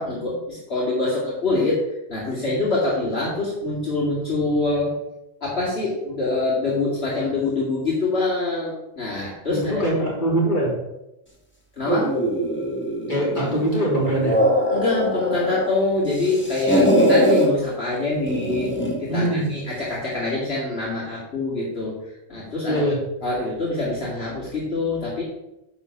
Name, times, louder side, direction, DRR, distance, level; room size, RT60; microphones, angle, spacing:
voice 1, 0.0-1.8 2.1-4.9 5.4-9.8 11.8-12.1 14.7-18.7 19.0-21.9 22.3-22.8 23.2-25.2, left 2 dB, 65° left, -7 dB, 2.5 m, -25 dB
voice 2, 9.5-10.7 13.1-14.4 19.1-19.5 22.7-23.0, right 1 dB, 45° left, -5 dB, 3.3 m, -22 dB
sound 1, 11.9-13.6 14.0-15.7 16.0-17.5 18.3-19.0, equal, 10° left, 1.8 m, -21 dB
9.6 x 4.0 x 7.0 m, 0.91 s
omnidirectional pair, 1.1 m